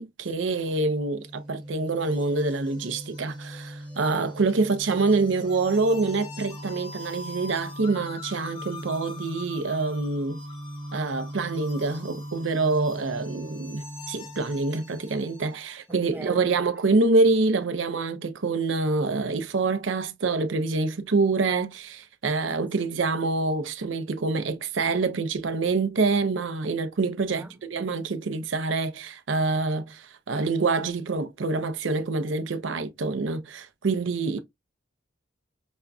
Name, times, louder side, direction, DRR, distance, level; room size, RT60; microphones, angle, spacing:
voice 1, 0.0-10.4 10.9-34.4, right 3 dB, 75° right, 0.6 m, -26 dB
sound 1, 1.0-15.5, equal, 40° right, 0.7 m, -41 dB
sound 2, 1.2-15.8, left 4 dB, 25° left, 0.8 m, -45 dB
voice 2, 15.9-16.5 27.3-27.5, right 2 dB, 10° right, 0.4 m, -40 dB
5.1 x 2.3 x 2.4 m
head